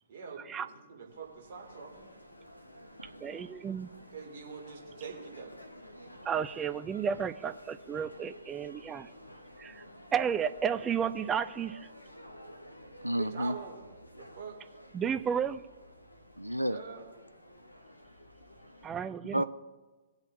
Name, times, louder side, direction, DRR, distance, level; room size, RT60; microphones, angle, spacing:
voice 1, 0.1-2.1 3.1-3.2 4.1-5.5 13.1-13.9 14.2-14.6 16.7-17.0 19.0-19.2, right 5 dB, 50° right, 1 dB, 2.4 m, -44 dB
sound 1, 1.1-18.9, left 1 dB, 85° left, 1.1 m, -52 dB
voice 2, 3.2-3.9 6.3-9.1 9.6-9.8 10.1-11.8 14.9-15.6 18.8-19.4, right 7 dB, 15° right, 12 dB, 0.5 m, -32 dB
voice 3, 13.0-13.6 16.4-16.8 19.3-19.4, right 1 dB, 90° right, 12 dB, 0.4 m, -30 dB
19.0 x 8.0 x 2.7 m, 1.3 s
figure-of-eight pair, 115°, 0 cm